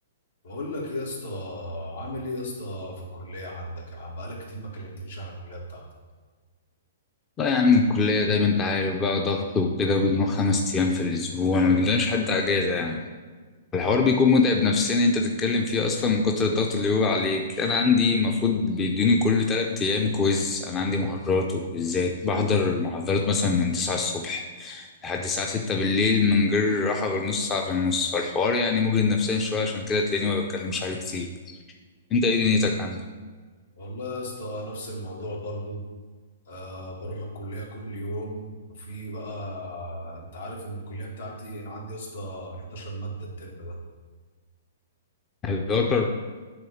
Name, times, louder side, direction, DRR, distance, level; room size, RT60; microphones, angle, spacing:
voice 1, 0.4-5.9 33.8-35.8 36.5-43.8, equal, 75° left, -2 dB, 2.3 m, -36 dB
voice 2, 7.4-13.0 13.7-31.3 32.1-33.0 45.4-46.1, left 4 dB, 15° left, 3 dB, 0.5 m, -23 dB
8.9 x 3.5 x 6.4 m, 1.4 s
hypercardioid pair, 155°, 0 cm